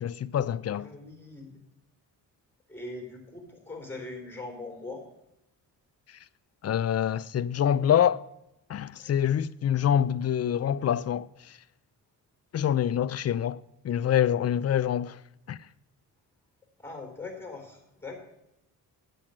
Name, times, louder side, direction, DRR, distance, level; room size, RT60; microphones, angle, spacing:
voice 1, 0.0-0.9 6.6-8.3 8.7-11.3 12.5-13.6 13.8-15.2 15.5-15.6, left 9 dB, 40° left, 0.4 m, -25 dB
voice 2, 0.7-1.6 2.7-5.0 9.0-9.2 16.8-18.2, left 3 dB, 5° left, 3.8 m, -41 dB
8.6 x 7.7 x 6.5 m
supercardioid pair, 65°, 40 cm